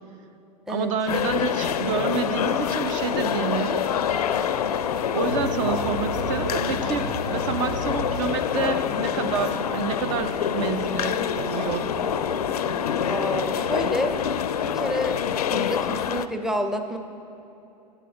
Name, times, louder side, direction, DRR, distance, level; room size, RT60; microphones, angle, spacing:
voice 1, 0.7-3.9 5.1-11.9, right 6 dB, 50° right, 10 dB, 0.7 m, -28 dB
sound 1, 1.1-16.3, left 9 dB, 65° left, 0.4 m, -26 dB
sound 2, 2.4-8.2, right 2 dB, 75° right, 1.0 m, -36 dB
sound 3, 8.5-14.2, equal, 20° right, 1.6 m, -38 dB
voice 2, 13.0-14.2 14.6-15.2 15.5-17.0, equal, ahead, 6 dB, 0.6 m, -28 dB
11.0 x 8.9 x 4.9 m, 3.0 s
figure-of-eight pair, 90°, 21 cm